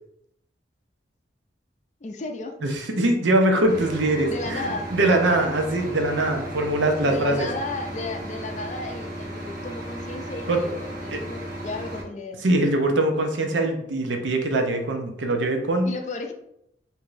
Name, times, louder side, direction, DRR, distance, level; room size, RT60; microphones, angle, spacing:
voice 1, 2.0-2.6 4.3-4.9 7.1-12.4 15.9-16.3, left 2 dB, 40° left, 4 dB, 0.4 m, -34 dB
voice 2, 2.6-7.5 10.5-10.6 11.1-11.2 12.4-15.9, right 1 dB, 90° right, 4 dB, 0.6 m, -22 dB
sound 1, 3.7-12.0, right 1 dB, 45° right, 1.2 m, -35 dB
4.7 x 2.7 x 2.5 m, 0.78 s
head